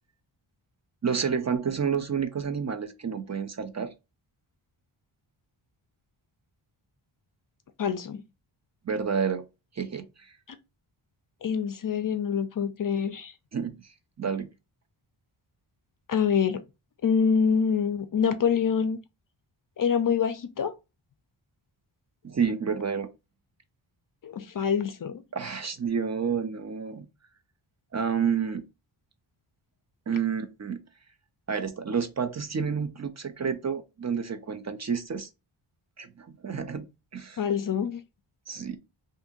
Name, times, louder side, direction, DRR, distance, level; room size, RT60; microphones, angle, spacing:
voice 1, 1.0-3.9 8.8-9.5 9.7-10.3 13.5-14.5 22.2-23.1 25.3-27.1 27.9-28.6 30.1-30.8 31.5-35.3 36.0-37.4 38.5-38.8, right 6 dB, 35° right, 0.5 m, -30 dB
voice 2, 7.8-8.2 11.4-13.3 16.1-16.6 17.0-19.0 19.8-20.7 24.2-25.2 37.4-38.0, left 7 dB, 45° left, 0.4 m, -26 dB
2.6 x 2.6 x 3.7 m
cardioid pair, 65°, 50 cm